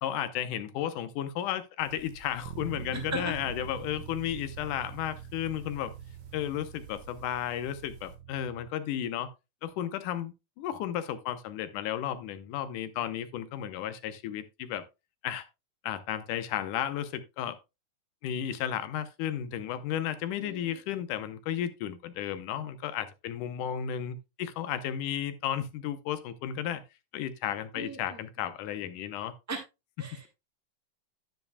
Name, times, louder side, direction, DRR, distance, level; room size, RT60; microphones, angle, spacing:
voice 1, 0.0-5.9 6.3-9.3 9.6-14.8 15.2-15.4 15.8-17.6 18.2-26.8 27.1-29.3, left 10 dB, 75° left, 2.2 m, -33 dB
sound 1, 1.8-8.2, right 4 dB, 50° right, 1.6 m, -51 dB
Bass guitar, 2.4-8.7, right 11 dB, 80° right, 1.6 m, -45 dB
voice 2, 2.9-3.3 20.4-20.7 27.7-28.2 29.5-29.6 30.0-30.3, right 2 dB, 25° right, 0.3 m, -37 dB
10.5 x 9.8 x 2.2 m
omnidirectional pair, 3.9 m